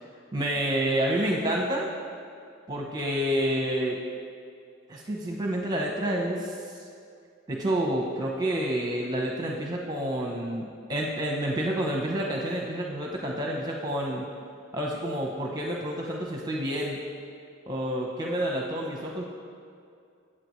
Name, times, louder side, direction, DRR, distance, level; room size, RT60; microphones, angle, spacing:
voice 1, 0.3-1.9 2.7-4.0 4.9-6.8 7.5-14.3 14.7-17.0 17.7-19.2, right 1 dB, 20° right, -1 dB, 0.9 m, -29 dB
22.5 x 7.6 x 3.2 m, 2.4 s
head